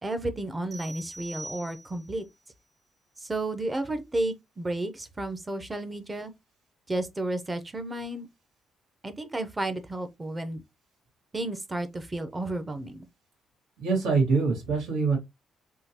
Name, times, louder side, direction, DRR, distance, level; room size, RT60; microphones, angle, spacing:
voice 1, 0.0-2.2 3.2-6.3 6.9-8.3 9.0-10.6 11.3-13.1, right 1 dB, 20° right, 0.6 m, -32 dB
sound 1, 0.7-2.2, right 1 dB, 45° right, 1.4 m, -43 dB
voice 2, 13.8-15.2, right 4 dB, 90° right, 2.0 m, -24 dB
3.7 x 2.3 x 2.8 m
cardioid pair, 90°, 0 cm